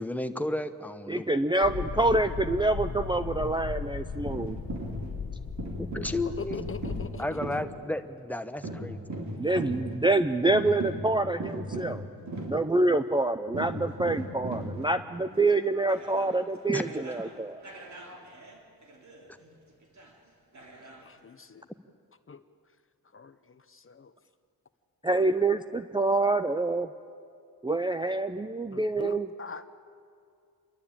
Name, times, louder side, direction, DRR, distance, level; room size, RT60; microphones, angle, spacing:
voice 1, 0.0-1.3 5.8-6.6 7.2-9.0 16.7-16.8, left 1 dB, 5° left, 9 dB, 1.0 m, -32 dB
voice 2, 1.1-4.6 9.4-12.0 12.4-17.6 25.0-26.9 27.6-29.3, right 2 dB, 15° right, 10 dB, 0.5 m, -26 dB
sound 1, 1.6-7.1, left 5 dB, 60° left, 1.8 m, -37 dB
sound 2, 4.1-5.2 5.6-7.9 8.6-13.1 13.5-16.4 16.8-17.3 17.6-19.5 19.8-20.1 20.5-21.0, right 1 dB, 50° right, 3.5 m, -38 dB
voice 3, 6.2-7.4 21.0-21.6 22.3-22.4 23.1-24.1 28.7-29.7, left 5 dB, 35° left, 11 dB, 0.8 m, -43 dB
27.5 x 11.5 x 8.8 m, 2.3 s
cardioid pair, 80°, 38 cm